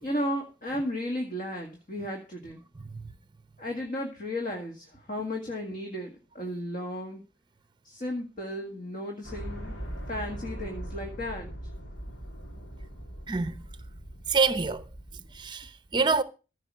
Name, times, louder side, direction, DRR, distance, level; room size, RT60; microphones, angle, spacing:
voice 1, 0.0-2.6 3.6-7.2 7.8-9.8 10.1-11.5, left 1 dB, 45° left, 1.9 m, -34 dB
sound 1, 9.2-15.5, right 1 dB, 85° left, 3.3 m, -40 dB
voice 2, 13.3-13.6 14.3-14.8 15.3-16.2, right 4 dB, 25° right, 0.7 m, -26 dB
15.0 x 5.0 x 6.2 m
head